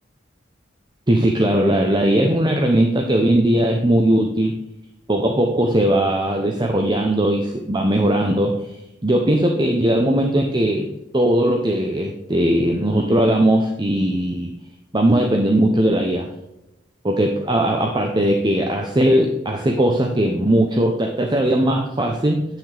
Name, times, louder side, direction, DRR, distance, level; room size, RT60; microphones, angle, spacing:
voice 1, 1.1-4.5 5.1-8.8 9.0-10.9 11.1-14.5 14.9-16.3 17.0-22.5, right 1 dB, 25° right, 3 dB, 0.8 m, -19 dB
9.9 x 6.1 x 3.4 m, 0.90 s
head